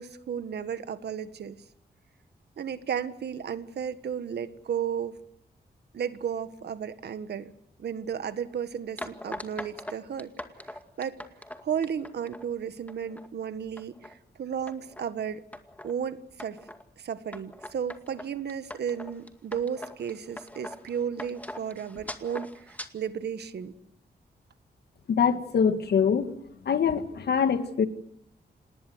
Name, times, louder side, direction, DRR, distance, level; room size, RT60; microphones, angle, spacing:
voice 1, 0.0-1.6 2.6-5.2 5.9-7.5 7.8-10.3 10.7-11.2 11.6-15.4 15.8-16.6 17.0-23.7, right 8 dB, 85° right, 12 dB, 1.5 m, -34 dB
sound 1, 9.0-12.4 12.9-13.3 13.6-14.1 14.7-15.1 15.5-15.9 16.4-16.8 17.3-22.9, left 1 dB, 10° left, 2.2 m, -41 dB
voice 2, 25.1-26.4 26.6-27.9, left 6 dB, 85° left, 9 dB, 1.9 m, -24 dB
28.0 x 20.0 x 8.0 m, 0.70 s
wide cardioid pair, 105°, 17 cm